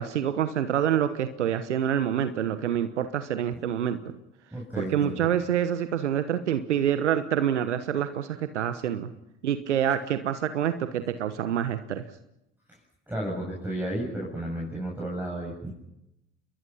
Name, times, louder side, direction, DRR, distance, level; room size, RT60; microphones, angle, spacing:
voice 1, 0.0-4.0 4.8-9.1 9.4-12.0, right 9 dB, 90° right, 11 dB, 1.1 m, -27 dB
voice 2, 4.5-5.2 12.7-12.8 13.1-15.7, right 1 dB, 5° right, -3 dB, 7.9 m, -33 dB
29.0 x 22.0 x 5.7 m, 0.86 s
hypercardioid pair, 65°, 34 cm